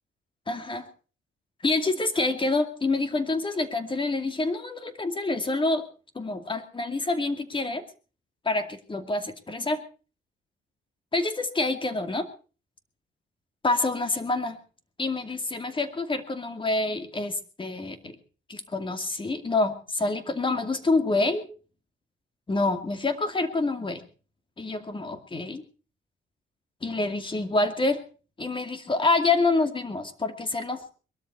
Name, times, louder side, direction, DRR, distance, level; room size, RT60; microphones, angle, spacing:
voice 1, 0.5-0.9 1.6-5.8 6.1-7.8 8.4-9.8 11.1-12.3 13.6-14.6 15.0-18.2 18.5-21.5 22.5-24.0 24.6-25.6 26.8-28.0 28.4-30.9, left 3 dB, 25° left, 8 dB, 2.5 m, -27 dB
22.0 x 13.0 x 4.2 m, 0.37 s
cardioid pair, 90°, 20 cm